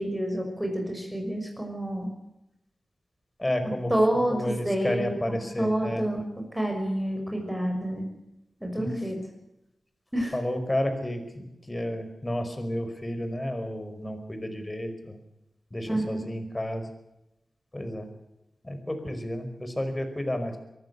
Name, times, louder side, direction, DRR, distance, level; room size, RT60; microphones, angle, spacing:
voice 1, 0.0-2.1 3.9-6.2 6.5-8.1 8.6-9.2 10.1-10.3 15.9-16.2, right 1 dB, 5° right, 2 dB, 6.2 m, -28 dB
voice 2, 3.4-3.9 4.3-6.1 8.8-9.1 10.3-15.2 15.7-16.9 17.7-18.1 18.6-20.6, left 1 dB, 20° left, 7 dB, 5.1 m, -31 dB
24.0 x 15.0 x 8.2 m, 0.89 s
wide cardioid pair, 80°, 0 cm